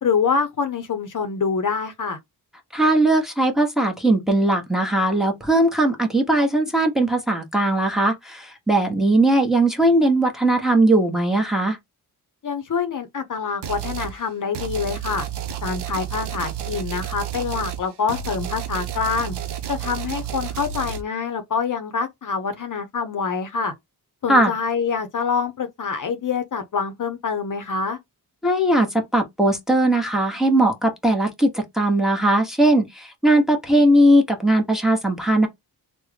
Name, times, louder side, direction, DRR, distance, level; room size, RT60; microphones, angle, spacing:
voice 1, 0.0-2.2 12.4-15.3 15.6-19.3 19.7-23.7 24.2-28.0, left 5 dB, 50° left, 0.7 m, -25 dB
voice 2, 2.7-11.8 24.3-24.5 28.4-35.5, right 1 dB, ahead, 0.9 m, -19 dB
sound 1, 13.6-14.2 14.5-21.0, right 10 dB, 75° right, 0.6 m, -31 dB
3.4 x 2.1 x 3.2 m
cardioid pair, 70°, 41 cm